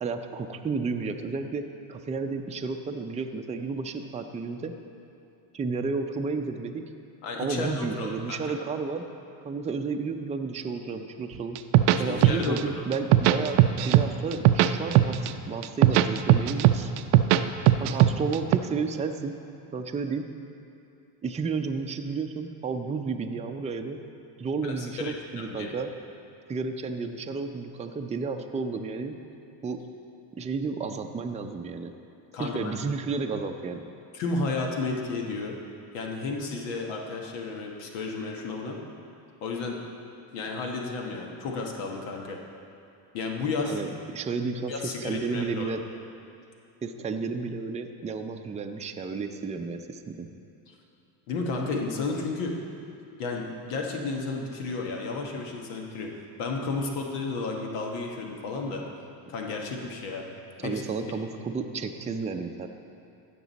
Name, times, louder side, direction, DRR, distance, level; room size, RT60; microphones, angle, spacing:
voice 1, 0.0-4.7 5.5-6.8 7.4-9.0 9.4-11.6 12.0-13.6 13.8-16.9 17.8-19.3 19.7-20.2 21.2-24.0 24.4-25.9 26.5-29.2 29.6-29.8 30.4-31.9 32.4-33.8 43.7-43.9 44.1-45.8 46.8-50.3 60.6-62.7, right 4 dB, 15° right, 5 dB, 0.5 m, -32 dB
voice 2, 7.2-8.6 12.1-12.6 24.6-24.7 25.0-25.7 32.3-32.7 34.1-35.6 35.9-38.8 39.4-39.8 40.3-42.4 43.1-43.8 44.7-45.7 50.7-50.8 51.3-52.5 53.2-56.1 56.4-58.8 59.3-60.3 60.6-60.8, left 3 dB, 85° left, 1 dB, 1.3 m, -32 dB
sound 1, 11.6-12.6 12.9-14.1 14.3-15.3 15.6-17.4 17.7-18.6, right 14 dB, 75° right, 0.6 m, -18 dB
15.5 x 6.1 x 4.1 m, 2.7 s
supercardioid pair, 105°, 43 cm